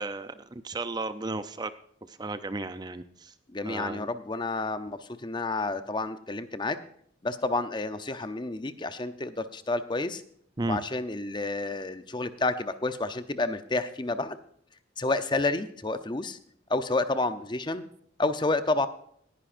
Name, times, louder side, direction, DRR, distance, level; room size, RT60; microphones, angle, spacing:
voice 1, 0.0-1.7 2.1-3.3 3.6-4.1 10.6-10.8, right 2 dB, 20° right, 11 dB, 0.5 m, -34 dB
voice 2, 3.5-6.8 7.2-10.2 10.7-14.4 15.0-16.4 16.7-17.9 18.2-18.9, left 2 dB, 25° left, 11 dB, 0.7 m, -30 dB
19.0 x 11.0 x 2.6 m, 0.65 s
head